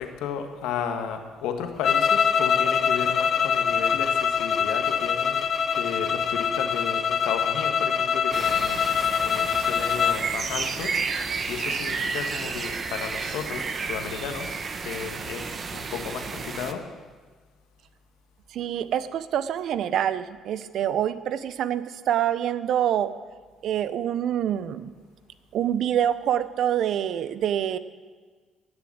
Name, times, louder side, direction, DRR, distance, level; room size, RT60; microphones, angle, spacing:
voice 1, 0.0-5.4 5.7-8.8 9.2-10.9 11.5-16.9, left 7 dB, 90° left, 6 dB, 1.7 m, -34 dB
sound 1, 1.8-10.2, left 7 dB, 50° left, 0.9 m, -24 dB
sound 2, 8.3-16.7, right 4 dB, 35° right, 1.1 m, -31 dB
voice 2, 18.5-23.1 23.6-24.9 25.5-27.8, right 10 dB, 65° right, 15 dB, 0.7 m, -26 dB
18.0 x 7.0 x 8.7 m, 1.4 s
cardioid pair, 115°, 0 cm